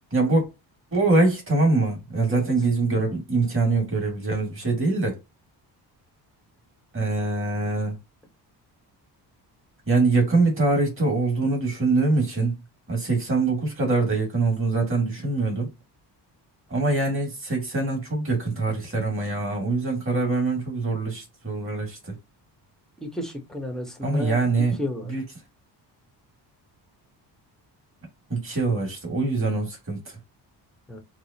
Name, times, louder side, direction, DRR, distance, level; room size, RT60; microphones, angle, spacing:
voice 1, 0.1-0.4 0.9-5.2 6.9-7.9 9.9-12.5 12.9-15.7 16.7-22.0 24.0-24.8 25.1-25.2 28.3-30.0, right 3 dB, 30° right, 2.0 m, -23 dB
voice 2, 23.0-24.4 24.8-25.1 30.9-31.0, left 1 dB, ahead, 1.0 m, -32 dB
4.8 x 2.0 x 2.8 m
cardioid pair, 105°, 43 cm